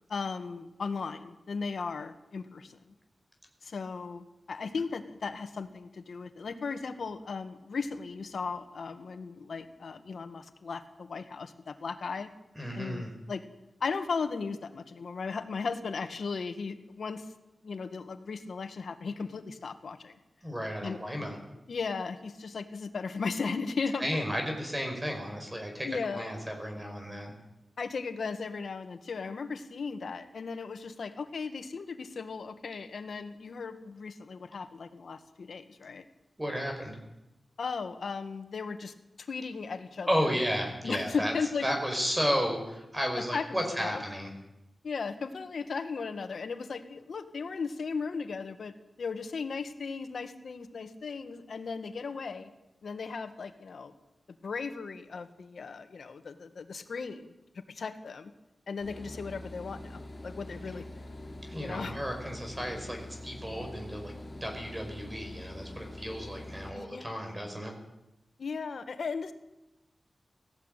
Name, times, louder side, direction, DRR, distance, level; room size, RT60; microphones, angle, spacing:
voice 1, 0.1-2.8 3.6-12.3 12.7-13.4 13.8-17.3 17.6-20.2 20.8-21.3 21.7-24.2 25.8-26.2 27.8-36.1 37.6-40.3 40.8-41.7 43.3-44.0 44.8-52.5 52.8-53.9 54.4-58.3 58.7-61.0 61.6-62.0 66.7-67.1 68.4-69.3, left 5 dB, 75° left, 9 dB, 1.7 m, -36 dB
voice 2, 12.5-13.1 20.4-21.4 24.0-27.3 36.4-37.0 40.1-41.3 41.6-44.3 61.5-63.0 63.2-64.1 64.4-67.7, equal, 15° right, 3 dB, 5.1 m, -33 dB
sound 1, 58.8-66.7, left 1 dB, 30° left, 3.4 m, -44 dB
18.5 x 15.5 x 9.2 m, 0.93 s
wide cardioid pair, 85°, 0 cm